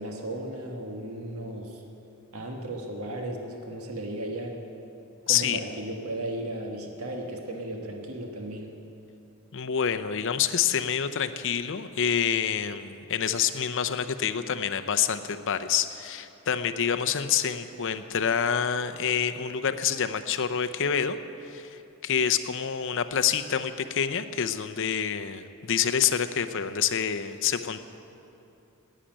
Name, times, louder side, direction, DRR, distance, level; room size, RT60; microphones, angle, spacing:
voice 1, 0.0-1.8 2.3-4.6 5.3-8.7, right 1 dB, 80° right, 2 dB, 1.5 m, -35 dB
voice 2, 5.3-5.6 9.5-21.2 21.4-27.8, left 8 dB, 60° left, 9 dB, 0.6 m, -27 dB
11.5 x 10.0 x 8.9 m, 2.8 s
head